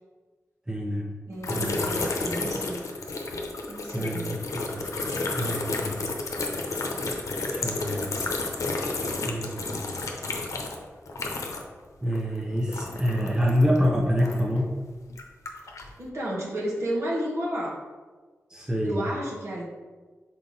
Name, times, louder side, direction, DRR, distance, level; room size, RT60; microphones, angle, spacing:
voice 1, 0.7-1.1 1.5-1.8 3.9-4.9 5.3-6.0 7.5-8.1 9.2-9.7 12.0-14.7 18.5-19.0, equal, 15° right, -2 dB, 0.9 m, -26 dB
voice 2, 1.3-2.9 3.7-4.3 16.0-17.8 18.8-19.6, right 1 dB, 60° right, -5 dB, 1.8 m, -32 dB
sound 1, 1.4-11.8 12.1-14.6 15.1-15.9, left 3 dB, 80° left, 0.7 m, -31 dB
5.4 x 4.4 x 4.0 m, 1.4 s
cardioid pair, 60°, 5 cm